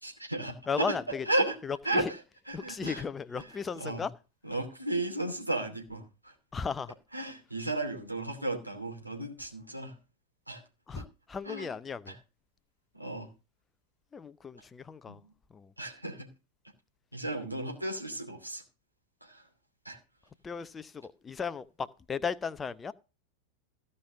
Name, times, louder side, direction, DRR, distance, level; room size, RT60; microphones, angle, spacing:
voice 1, 0.0-1.0 1.2-1.6 1.8-3.0 3.4-3.5 3.8-4.1 4.4-6.3 7.1-10.0 10.5-10.6 11.0-11.1 11.4-11.7 12.1-12.2 12.9-13.3 15.1-15.3 15.8-16.3 17.1-18.6 19.2-19.4 19.8-20.0, right 2 dB, 90° right, 2.8 m, -34 dB
voice 2, 0.7-1.2 1.6-2.1 2.5-4.1 6.5-6.9 10.9-12.1 14.1-15.2 15.5-15.7 20.4-22.9, left 5 dB, 15° left, 0.6 m, -36 dB
15.5 x 5.5 x 6.3 m
figure-of-eight pair, 90°, 0 cm